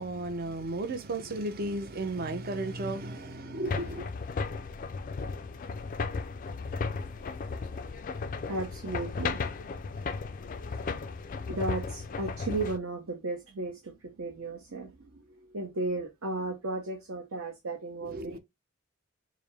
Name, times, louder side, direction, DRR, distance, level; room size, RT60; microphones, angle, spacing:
voice 1, 0.0-4.1 18.0-18.4, right 2 dB, 40° right, 0.6 m, -34 dB
sound 1, 3.7-12.8, left 4 dB, 35° left, 0.3 m, -35 dB
voice 2, 8.5-9.4 11.5-18.4, right 2 dB, 65° right, 0.9 m, -35 dB
4.9 x 2.1 x 3.2 m
head